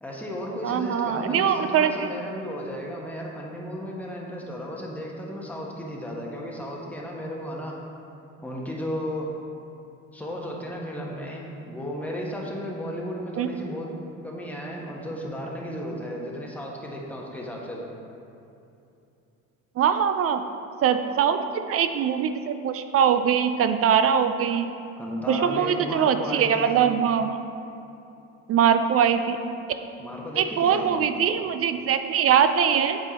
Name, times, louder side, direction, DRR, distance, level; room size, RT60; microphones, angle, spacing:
voice 1, 0.0-7.8 8.4-9.3 10.1-13.9 14.2-17.9 25.0-26.8 30.0-31.0, equal, 5° left, -3 dB, 1.3 m, -34 dB
voice 2, 0.6-2.1 13.4-13.5 19.8-20.4 20.8-21.4 21.7-24.7 25.3-27.3 28.5-29.4 30.4-33.0, right 8 dB, 40° right, 9 dB, 0.4 m, -22 dB
7.5 x 4.3 x 4.1 m, 2.7 s
hypercardioid pair, 75°, 40 cm